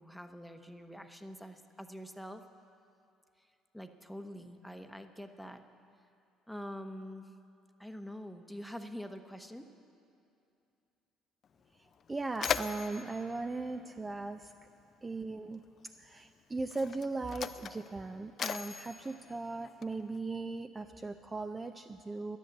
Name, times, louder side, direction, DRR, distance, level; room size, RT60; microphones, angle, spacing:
voice 1, 0.0-2.4 3.7-5.6 6.5-7.3 7.8-9.7, equal, ahead, 7 dB, 0.9 m, -45 dB
Mechanisms, 11.4-11.5 11.9-14.6 15.6-15.8 16.6-20.2, left 7 dB, 50° left, 0.4 m, -39 dB
voice 2, 11.7-14.5 15.0-15.6 16.0-22.4, right 3 dB, 25° right, 8 dB, 0.5 m, -38 dB
11.5 x 10.5 x 7.8 m, 2.6 s
hypercardioid pair, 60°, 0 cm